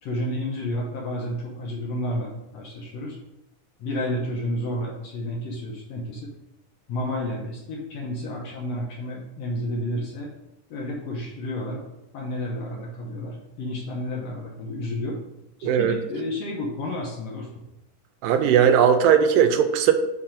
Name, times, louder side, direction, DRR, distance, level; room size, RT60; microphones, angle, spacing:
voice 1, 0.0-3.2 3.8-6.3 6.9-10.3 10.7-11.9 12.1-15.2 15.6-17.6, left 1 dB, 65° left, -2 dB, 1.7 m, -31 dB
voice 2, 15.6-16.0 18.2-19.9, right 8 dB, 85° right, 8 dB, 2.2 m, -18 dB
7.4 x 3.4 x 5.0 m, 0.91 s
omnidirectional pair, 3.9 m